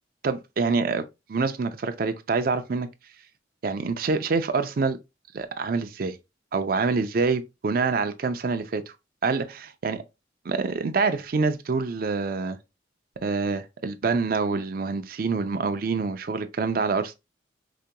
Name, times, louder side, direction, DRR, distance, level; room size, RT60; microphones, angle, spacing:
voice 1, 0.2-2.9 3.6-5.0 5.3-6.2 6.5-8.8 9.2-10.0 10.5-12.6 13.2-17.1, right 4 dB, 50° right, 0.4 m, -26 dB
4.9 x 2.8 x 2.2 m
head